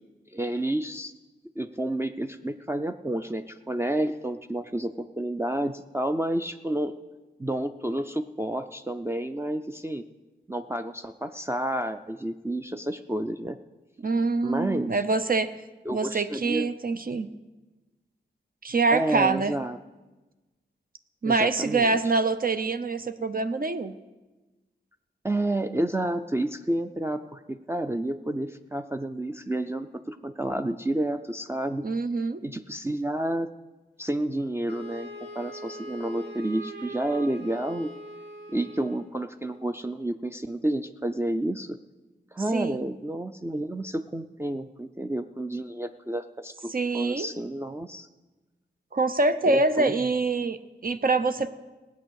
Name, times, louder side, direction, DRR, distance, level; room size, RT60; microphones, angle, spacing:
voice 1, 0.3-1.1 1.6-6.9 7.4-10.0 10.5-13.6 14.4-15.0 15.9-16.7 18.9-19.8 21.2-22.0 25.2-31.8 32.4-33.5 34.0-37.9 38.5-41.8 42.3-48.1 49.5-49.9, right 1 dB, 15° right, 5 dB, 0.5 m, -30 dB
voice 2, 14.0-15.5 15.9-17.3 18.6-19.5 21.2-23.9 31.8-32.4 42.5-42.8 46.7-47.3 48.9-51.5, right 3 dB, 50° right, 9 dB, 0.7 m, -25 dB
Wind instrument woodwind instrument, 34.7-39.1, equal, 65° right, 2.7 m, -41 dB
18.0 x 8.1 x 6.4 m, 1.2 s
wide cardioid pair, 90°, 19 cm